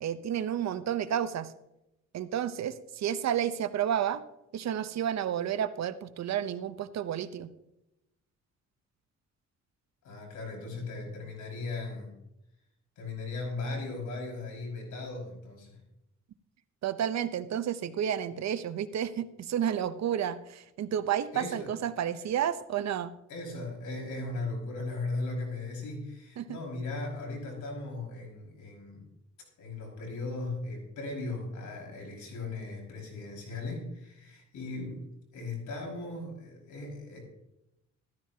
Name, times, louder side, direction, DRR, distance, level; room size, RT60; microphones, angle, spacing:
voice 1, 0.0-1.5 2.1-4.2 4.5-7.5 16.8-23.1 26.4-26.6, right 9 dB, 60° right, 13 dB, 0.8 m, -31 dB
voice 2, 10.0-12.1 13.0-15.8 21.3-21.7 23.3-29.1 29.6-35.1 35.3-37.2, left 3 dB, 75° left, -1 dB, 5.5 m, -37 dB
14.0 x 13.5 x 2.9 m, 0.87 s
cardioid pair, 90°, 30 cm